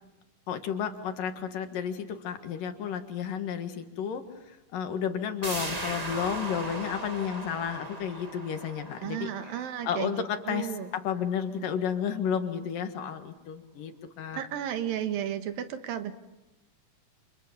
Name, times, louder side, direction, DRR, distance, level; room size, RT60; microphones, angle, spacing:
voice 1, 0.5-4.2 4.7-9.6 9.8-14.5, left 8 dB, 75° left, 7 dB, 3.3 m, -32 dB
sound 1, 5.4-10.9 11.2-11.3, right 2 dB, 25° right, 0.8 m, -38 dB
voice 2, 9.0-10.1 10.5-10.9 14.3-16.1, right 10 dB, 85° right, 8 dB, 3.2 m, -33 dB
29.0 x 28.0 x 7.3 m, 0.96 s
omnidirectional pair, 4.0 m